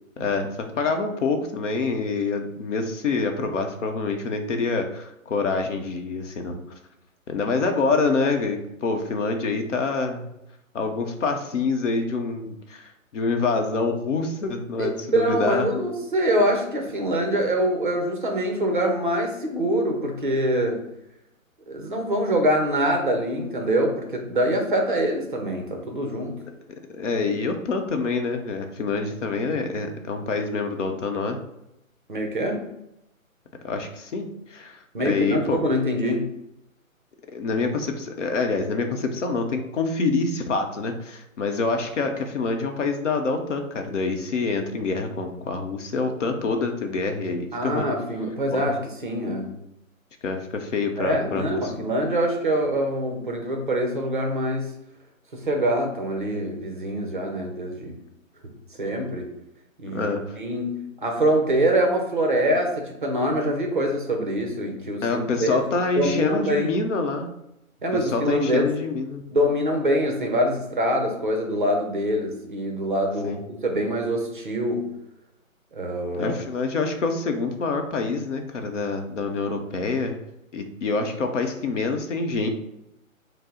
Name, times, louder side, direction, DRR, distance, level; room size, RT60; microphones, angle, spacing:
voice 1, 0.2-6.6 7.3-10.3 10.7-15.7 26.7-31.4 33.6-35.6 37.3-47.9 48.5-48.6 50.2-51.7 59.9-60.4 65.0-67.3 67.9-69.2 73.2-73.4 76.1-80.1 80.5-82.5, left 4 dB, 60° left, 5 dB, 0.7 m, -26 dB
voice 2, 14.8-20.8 21.7-26.4 32.1-32.7 34.9-36.2 47.5-49.6 51.0-54.7 55.3-58.0 58.8-59.3 59.8-60.1 60.4-65.7 66.0-66.8 67.8-68.7 69.3-74.9 75.7-76.3, equal, 40° right, 2 dB, 0.6 m, -24 dB
5.3 x 2.0 x 3.7 m, 0.85 s
hypercardioid pair, 165°, 41 cm